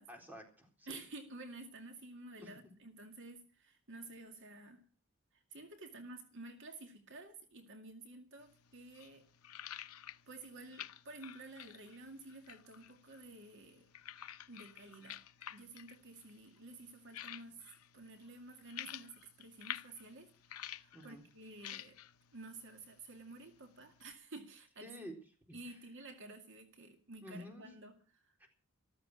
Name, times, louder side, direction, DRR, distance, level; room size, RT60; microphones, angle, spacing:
voice 1, 0.1-1.0 2.4-2.5 20.9-21.2 24.8-25.1 25.5-25.6 27.2-27.7 28.4-28.5, equal, 10° right, 3 dB, 4.1 m, -50 dB
voice 2, 0.9-4.8 5.3-9.2 10.3-13.9 14.5-15.2 15.5-17.7 17.9-22.0 22.3-25.0 25.5-28.3, right 2 dB, 60° right, 5 dB, 2.2 m, -52 dB
sound 1, 8.4-24.1, left 11 dB, 85° left, 0.7 m, -51 dB
14.5 x 14.0 x 6.2 m, 0.37 s
head